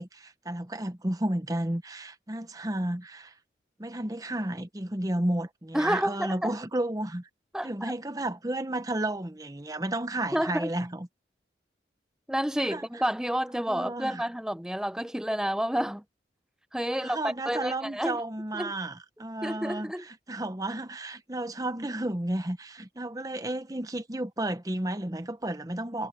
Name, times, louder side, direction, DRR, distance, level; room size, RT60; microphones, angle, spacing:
voice 1, 0.0-3.3 3.8-7.3 7.6-11.1 12.6-13.0 13.7-14.2 16.9-26.1, right 1 dB, 20° right, 1.0 m, -32 dB
voice 2, 5.7-6.5 7.5-7.7 10.3-10.7 12.3-16.0 16.7-18.2 18.5-18.7 19.4-20.0, equal, 5° right, 0.6 m, -29 dB
head